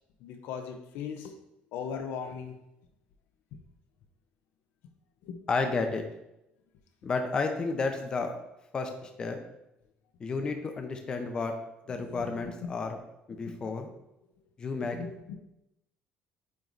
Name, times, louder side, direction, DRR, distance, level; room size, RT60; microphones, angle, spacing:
voice 1, 0.2-1.3 1.7-2.6 3.5-3.6 5.2-5.4 12.0-12.5 13.3-13.6 14.8-15.4, left 6 dB, 90° left, 6 dB, 0.8 m, -39 dB
voice 2, 5.5-6.0 7.0-8.3 8.7-9.4 10.2-11.5 11.9-13.0 13.3-13.9 14.6-15.0, left 4 dB, 25° left, 5 dB, 0.7 m, -31 dB
8.8 x 3.2 x 4.0 m, 0.87 s
cardioid pair, 170°, 3 cm